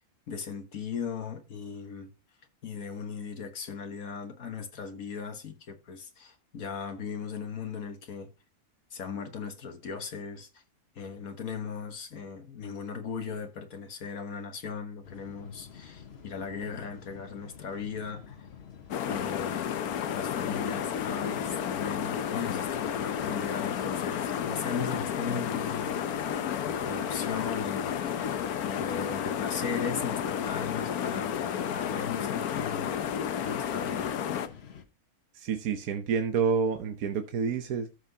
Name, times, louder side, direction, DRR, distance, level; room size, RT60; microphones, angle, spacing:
voice 1, 0.3-2.1 2.6-8.3 8.9-10.6 11.0-18.5 19.1-19.6 20.1-26.0 26.7-27.9 28.6-31.3 31.6-32.9 33.4-34.1, left 6 dB, 70° left, 1.7 m, -38 dB
sound 1, 15.0-34.8, left 7 dB, 50° left, 1.2 m, -49 dB
sound 2, 18.9-34.5, left 8 dB, 85° left, 1.3 m, -32 dB
voice 2, 35.3-37.9, right 6 dB, 75° right, 1.3 m, -28 dB
13.5 x 5.8 x 2.8 m
omnidirectional pair, 1.5 m